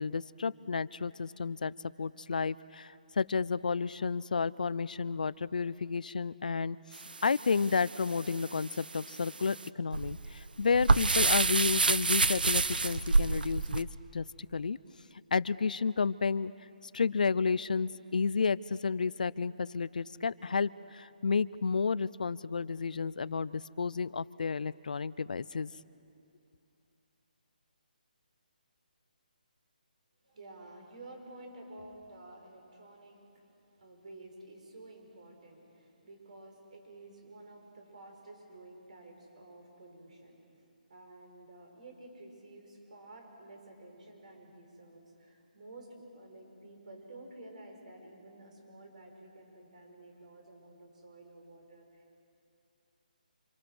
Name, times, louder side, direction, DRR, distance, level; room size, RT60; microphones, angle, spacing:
voice 1, 0.0-6.8 7.2-13.9 14.1-14.8 15.3-16.5 16.9-25.7, left 5 dB, 65° left, 18 dB, 0.6 m, -31 dB
sound 1, 6.9-13.8, right 3 dB, 85° right, 1.0 m, -29 dB
voice 2, 30.2-40.4 40.9-52.2, right 2 dB, 50° right, 2 dB, 6.3 m, -52 dB
28.0 x 26.5 x 6.2 m, 2.7 s
hypercardioid pair, 170°, 5 cm